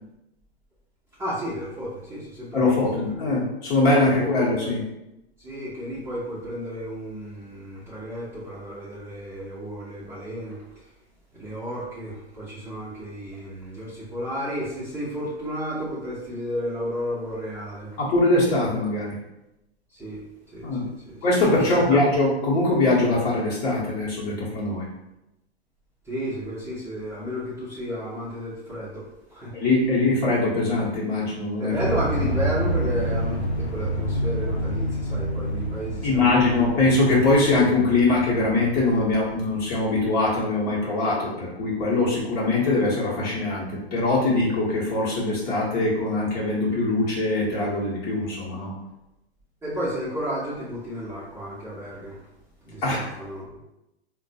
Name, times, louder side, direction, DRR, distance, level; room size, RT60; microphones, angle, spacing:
voice 1, 1.2-2.8 4.3-4.7 5.4-10.6 11.4-17.9 19.9-20.2 20.5-21.2 21.6-22.0 26.1-29.0 29.3-29.5 31.6-36.7 49.6-52.2 52.6-53.6, equal, 10° right, -10 dB, 0.9 m, -32 dB
voice 2, 2.5-4.8 18.0-19.1 20.6-20.9 21.2-24.9 29.5-31.7 36.0-48.7 52.8-53.1, left 2 dB, 30° left, -5 dB, 1.1 m, -22 dB
sound 1, 31.8-40.2, equal, 75° left, 0.8 m, -28 dB
4.0 x 2.2 x 2.8 m, 0.91 s
figure-of-eight pair, 110°, 32 cm